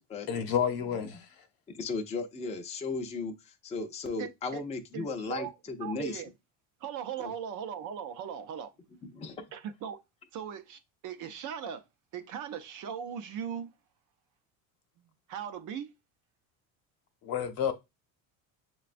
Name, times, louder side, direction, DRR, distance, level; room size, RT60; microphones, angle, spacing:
voice 1, 0.3-1.2 17.2-17.7, left 8 dB, 55° left, 0.9 m, -30 dB
voice 2, 1.7-6.2 7.2-7.3 9.0-9.5, left 3 dB, 15° left, 0.5 m, -36 dB
voice 3, 4.2-4.6 4.9-5.5 5.8-6.3 6.8-8.7 9.5-10.0 10.3-11.8 12.1-13.7 15.3-15.9, right 8 dB, 45° right, 0.6 m, -39 dB
6.7 x 2.3 x 2.4 m
supercardioid pair, 120°, 42 cm